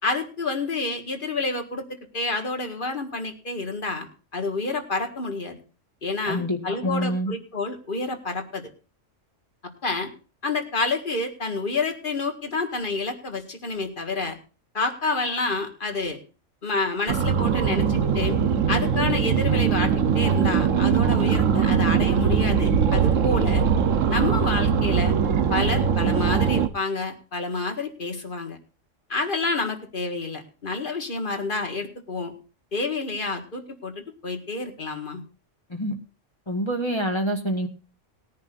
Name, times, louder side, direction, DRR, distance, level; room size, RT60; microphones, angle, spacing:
voice 1, 0.0-1.8 2.1-5.6 6.0-8.7 9.8-10.1 10.4-14.4 14.7-16.2 16.6-18.4 18.7-23.7 24.1-25.1 25.5-28.6 29.1-32.3 32.7-35.2, left 3 dB, 45° left, 5 dB, 2.1 m, -29 dB
voice 2, 6.2-7.3 35.7-35.9 36.5-37.7, equal, 20° left, 4 dB, 1.8 m, -26 dB
sound 1, 17.1-26.7, right 7 dB, 85° right, 1.3 m, -21 dB
20.5 x 10.5 x 2.6 m, 0.35 s
omnidirectional pair, 1.3 m